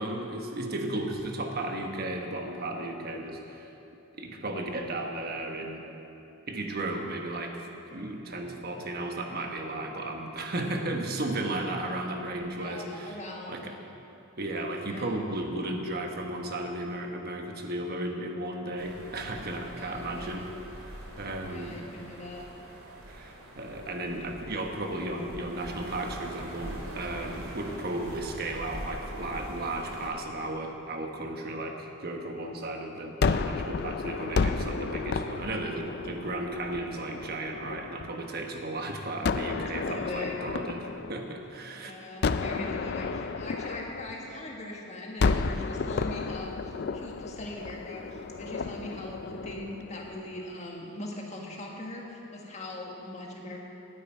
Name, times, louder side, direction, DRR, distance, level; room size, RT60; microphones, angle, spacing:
voice 1, 0.0-3.7 4.2-5.8 6.5-13.2 13.5-13.7 14.4-20.4 21.2-21.8 23.1-41.9, right 1 dB, 50° right, 3 dB, 1.2 m, -34 dB
voice 2, 11.7-12.0 12.6-13.7 14.8-15.2 19.7-20.4 21.5-22.4 39.2-40.4 41.7-53.6, left 1 dB, 35° left, -1 dB, 1.6 m, -41 dB
sound 1, 18.8-30.1, right 1 dB, 85° right, 2.3 m, -43 dB
Gunshot gunfire, 33.2-38.3 39.2-41.7 42.2-44.7 45.2-50.4, left 4 dB, 50° left, 0.4 m, -32 dB
9.4 x 9.0 x 9.1 m, 3.0 s
head